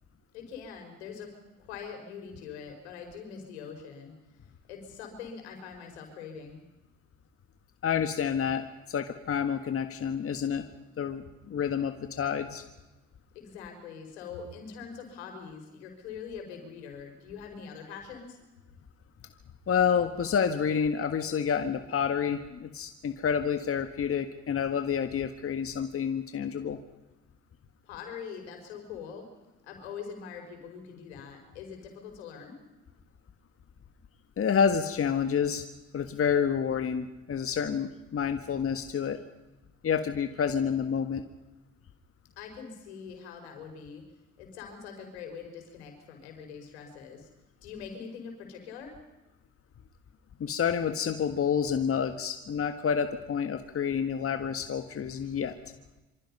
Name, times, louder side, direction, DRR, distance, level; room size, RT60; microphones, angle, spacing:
voice 1, 0.3-1.3 1.6-4.1 4.7-6.6 13.3-18.4 27.8-29.3 29.6-32.6 42.4-44.0 44.4-47.3 47.6-48.9, left 6 dB, 85° left, 3 dB, 5.3 m, -43 dB
voice 2, 7.8-10.7 11.0-12.6 19.7-26.8 34.4-35.6 35.9-39.2 39.8-41.2 50.4-55.5, left 7 dB, 45° left, 7 dB, 1.7 m, -29 dB
26.5 x 25.5 x 5.6 m, 1.1 s
hypercardioid pair, 55°, 32 cm